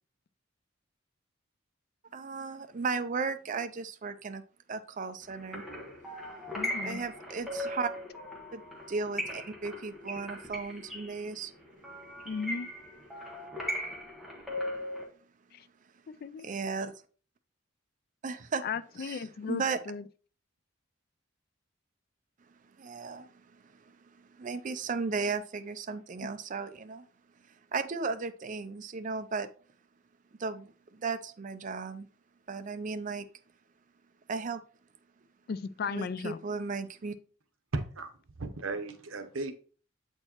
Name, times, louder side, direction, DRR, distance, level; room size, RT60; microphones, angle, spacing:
voice 1, 2.1-4.4 4.7-5.6 6.8-7.9 8.5-8.6 8.9-11.5 16.4-16.9 18.2-18.6 19.0-19.2 19.5-19.8 22.8-23.3 24.4-27.1 27.7-29.5 30.4-32.1 32.5-33.3 34.3-34.6 35.9-37.2, right 4 dB, 40° right, 0.4 m, -35 dB
sound 1, 5.3-15.0, equal, ahead, 1.3 m, -39 dB
voice 2, 6.6-7.0 12.3-12.7 15.5-15.6 16.2-16.5 18.6-20.1 26.2-26.3 35.5-36.4, left 5 dB, 50° left, 0.3 m, -36 dB
voice 3, 37.7-38.1 38.4-39.5, right 3 dB, 80° right, 0.8 m, -35 dB
7.6 x 4.4 x 2.9 m
head